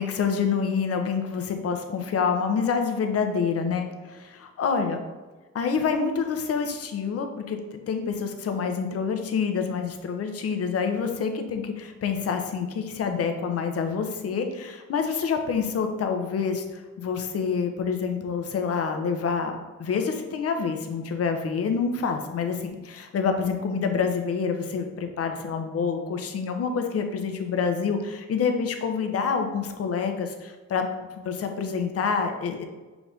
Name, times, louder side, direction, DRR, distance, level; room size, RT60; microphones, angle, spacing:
voice 1, 0.0-5.0 5.5-32.6, left 5 dB, 50° left, 5 dB, 0.7 m, -27 dB
6.0 x 2.5 x 3.4 m, 1.3 s
cardioid pair, 90°, 30 cm